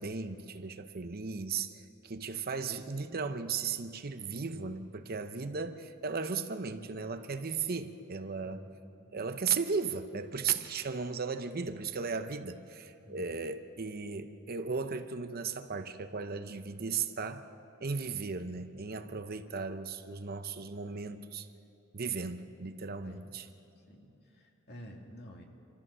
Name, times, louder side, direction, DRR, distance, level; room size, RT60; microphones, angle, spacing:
voice 1, 0.0-8.6 9.1-17.5 17.8-21.5 21.9-23.5, right 5 dB, 45° right, 8 dB, 0.8 m, -36 dB
voice 2, 8.4-9.1 13.0-13.4 23.0-23.3 23.9-25.4, equal, 50° left, 1 dB, 2.4 m, -51 dB
26.5 x 14.5 x 6.8 m, 2.8 s
head